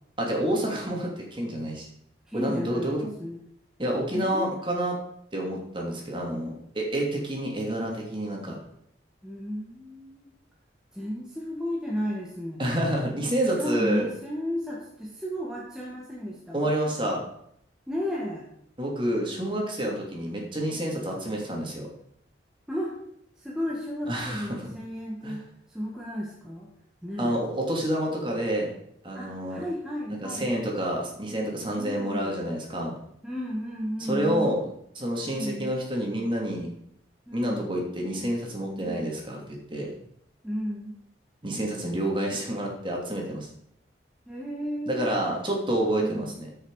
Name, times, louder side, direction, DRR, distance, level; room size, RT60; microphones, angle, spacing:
voice 1, 0.2-1.9 2.3-3.1 3.8-5.0 5.3-8.6 12.6-14.1 16.5-17.2 18.8-21.9 24.1-24.6 25.2-25.4 27.2-28.7 29.0-29.6 30.2-32.9 34.1-34.6 35.0-36.7 37.3-39.9 41.4-43.5 44.9-46.5, right 1 dB, 25° right, -1 dB, 2.7 m, -28 dB
voice 2, 2.3-3.5 4.1-4.5 9.2-10.3 10.9-12.6 13.6-16.7 17.9-18.5 22.7-22.9 23.4-25.4 25.7-26.7 27.0-27.3 29.1-30.5 31.8-32.5 33.2-34.6 35.2-35.7 37.3-37.7 38.8-39.1 40.4-40.9 44.3-45.1 46.0-46.3, equal, 5° right, -4 dB, 1.5 m, -33 dB
14.0 x 6.7 x 4.8 m, 0.72 s
head